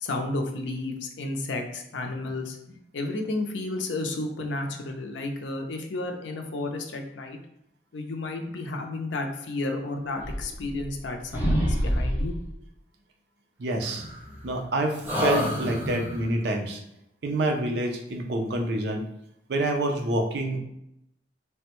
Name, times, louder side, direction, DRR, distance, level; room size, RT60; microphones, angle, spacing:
voice 1, 0.0-7.4 7.9-12.4, left 2 dB, 80° left, 3 dB, 0.5 m, -32 dB
sound 1, 10.2-11.1 11.3-12.5 13.8-14.7 15.0-16.3, equal, 10° right, 0.6 m, -27 dB
voice 2, 13.6-14.1 14.4-16.8 17.2-19.0 19.5-20.6, right 1 dB, 65° right, 2 dB, 0.5 m, -27 dB
3.3 x 2.1 x 2.9 m, 0.82 s
head